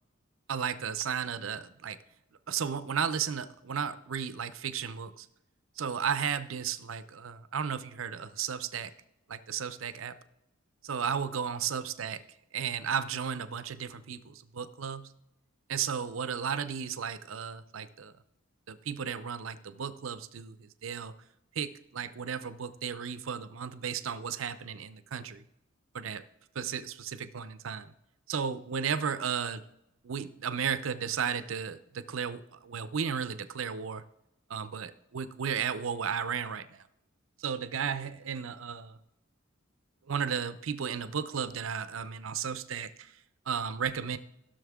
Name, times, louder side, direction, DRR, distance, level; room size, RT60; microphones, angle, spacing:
voice 1, 0.5-2.0 2.5-5.3 5.8-8.9 9.3-10.2 10.8-12.2 12.5-15.1 15.7-18.1 18.7-21.1 21.5-25.4 25.9-26.2 26.5-27.9 28.3-29.6 30.0-34.0 34.5-36.8 37.4-39.0 40.1-43.1 43.5-44.2, right 7 dB, 85° right, 14 dB, 0.6 m, -34 dB
16.0 x 6.5 x 3.6 m, 0.85 s
head